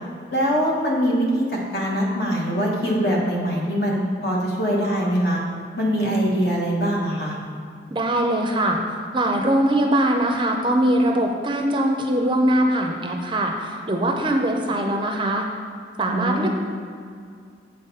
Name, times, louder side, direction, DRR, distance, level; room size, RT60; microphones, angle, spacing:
voice 1, 0.3-1.5 1.7-5.4 5.8-7.4 16.0-16.5, equal, 55° left, -3 dB, 1.3 m, -22 dB
voice 2, 7.9-8.8 9.1-15.4 16.0-16.5, right 1 dB, 25° right, 2 dB, 0.5 m, -21 dB
7.8 x 4.0 x 5.4 m, 2.2 s
head